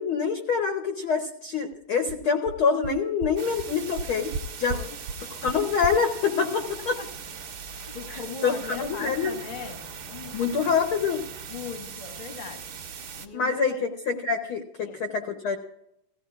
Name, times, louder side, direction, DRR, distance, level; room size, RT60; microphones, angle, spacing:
voice 1, 0.0-4.8 5.4-7.0 8.1-9.4 10.3-11.2 13.3-15.6, left 5 dB, 90° left, 5 dB, 1.1 m, -26 dB
sound 1, 1.7-1.8 2.1-2.2 2.5-2.6 2.8-2.9 3.2-3.3 3.6-3.7 4.0-4.4 4.7-4.8 5.1-5.2 5.5-5.6 5.8-5.9, right 5 dB, 80° right, 1.9 m, -32 dB
sound 2, 3.4-13.3, right 6 dB, 60° right, 1.5 m, -40 dB
voice 2, 7.9-9.8 10.1-10.4 11.5-12.6 13.1-13.8 14.8-15.0, left 6 dB, 60° left, 3 dB, 0.5 m, -39 dB
17.5 x 15.0 x 2.4 m, 0.80 s
omnidirectional pair, 3.7 m